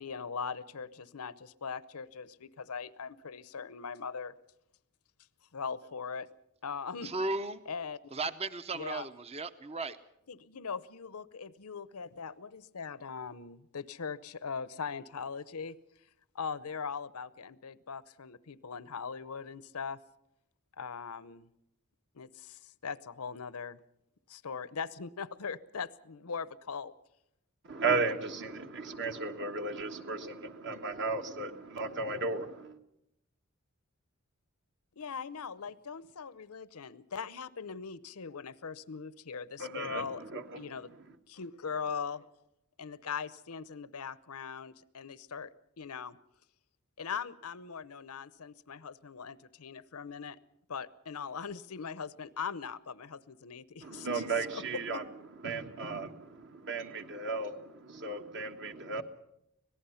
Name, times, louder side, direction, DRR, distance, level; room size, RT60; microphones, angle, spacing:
voice 1, 0.0-4.3 5.5-6.3 6.6-7.1 7.7-8.0 8.7-9.1 10.3-15.8 16.3-20.0 20.8-21.4 22.1-23.8 24.3-26.9 35.0-40.2 40.6-40.9 41.3-42.3 42.8-45.5 45.8-46.2 47.0-50.4 50.7-54.2 54.5-55.0, left 6 dB, 85° left, 0.8 m, -40 dB
voice 2, 7.0-7.6 8.1-10.0, right 3 dB, 30° right, 0.7 m, -35 dB
voice 3, 27.6-32.8 39.6-40.6 53.8-55.0 55.4-59.0, right 3 dB, 55° right, 1.5 m, -35 dB
25.5 x 18.0 x 5.7 m
head